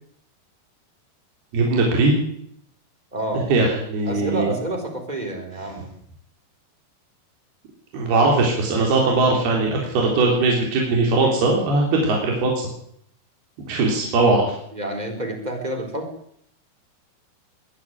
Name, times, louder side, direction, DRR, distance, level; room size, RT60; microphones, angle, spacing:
voice 1, 1.5-2.1 3.5-4.5 7.9-12.5 13.7-14.6, right 3 dB, 65° right, -1 dB, 5.7 m, -19 dB
voice 2, 3.1-3.5 4.0-5.9 14.7-16.1, right 1 dB, 10° right, 5 dB, 4.3 m, -28 dB
21.5 x 13.5 x 9.5 m, 0.68 s
omnidirectional pair, 4.9 m